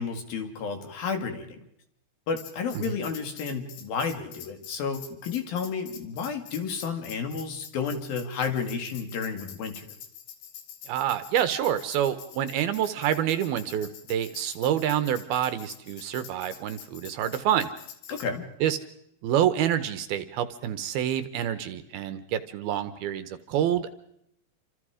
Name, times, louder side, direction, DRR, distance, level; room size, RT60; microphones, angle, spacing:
voice 1, 0.0-1.6 2.3-9.9 18.1-18.5, left 5 dB, 60° left, 6 dB, 3.9 m, -31 dB
Tambourine, 2.4-18.3, left 9 dB, 80° left, 4.2 m, -46 dB
voice 2, 10.9-17.7 18.6-18.8 19.2-23.9, right 10 dB, 70° right, 12 dB, 2.6 m, -27 dB
28.0 x 26.5 x 5.0 m, 0.75 s
omnidirectional pair, 5.0 m